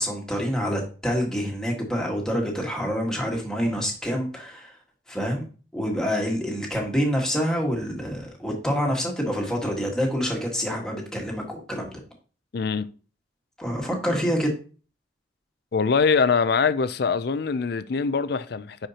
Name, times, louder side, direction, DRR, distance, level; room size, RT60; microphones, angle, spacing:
voice 1, 0.0-4.7 5.1-5.5 5.7-12.0 13.6-14.5, equal, 5° left, 1.6 m, -27 dB
voice 2, 12.5-12.9 15.7-18.9, left 5 dB, 55° left, 0.4 m, -23 dB
9.7 x 4.5 x 2.9 m
head